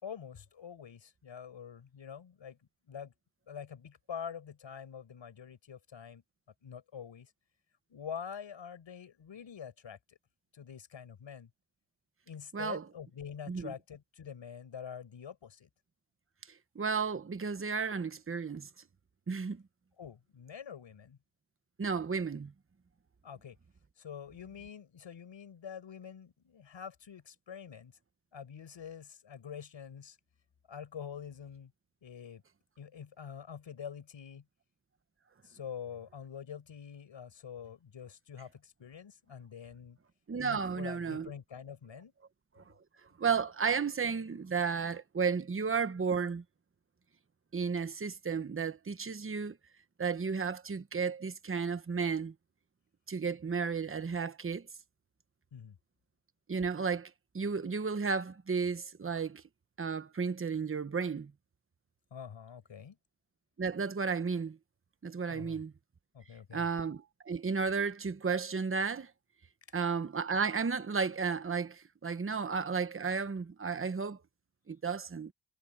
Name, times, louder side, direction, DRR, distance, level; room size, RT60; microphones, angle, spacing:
voice 1, 0.0-2.6 2.9-3.1 3.5-6.2 6.6-7.3 7.9-10.2 10.5-11.5 12.3-15.7 20.0-21.2 23.2-23.6 24.0-27.9 28.3-30.2 30.7-31.7 32.0-32.4 32.8-34.4 35.4-40.0 40.4-42.1 55.5-55.8 62.1-63.0 65.3-65.6 66.1-66.7, left 7 dB, 85° left, 6.0 m, -46 dB
voice 2, 12.5-12.8 13.5-13.7 16.7-18.7 19.3-19.6 21.8-22.5 40.3-41.3 42.6-42.7 43.2-46.4 47.5-49.6 50.0-52.3 53.1-54.7 56.5-59.4 59.8-61.3 63.6-64.6 65.0-65.7 66.5-69.1 69.7-74.2 74.7-75.3, right 5 dB, 30° right, 1.1 m, -33 dB
wide cardioid pair, 115°, 44 cm